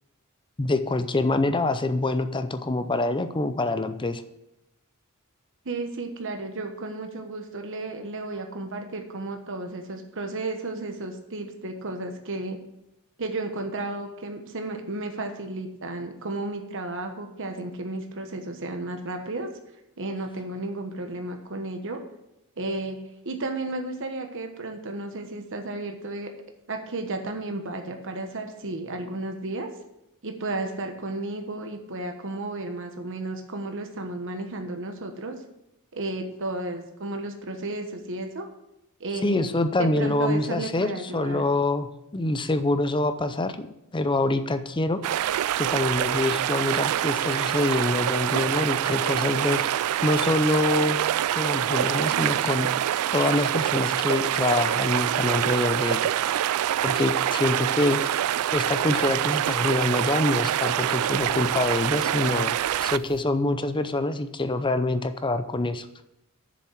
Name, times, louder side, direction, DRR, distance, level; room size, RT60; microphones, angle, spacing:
voice 1, 0.6-4.2 39.2-41.9 42.1-43.7 43.9-45.0 45.6-49.6 50.0-51.0 51.3-52.7 53.1-56.1 56.8-58.0 58.5-65.9, left 2 dB, 20° left, 10 dB, 0.6 m, -25 dB
voice 2, 5.6-12.6 13.2-19.5 20.0-22.0 22.6-23.0 23.2-26.3 26.7-29.7 30.2-35.4 35.9-38.5 39.0-41.4, right 2 dB, 60° right, 5 dB, 1.2 m, -33 dB
sound 1, 45.0-63.2, right 11 dB, 80° right, 0.3 m, -25 dB
7.3 x 7.1 x 7.3 m, 0.85 s
head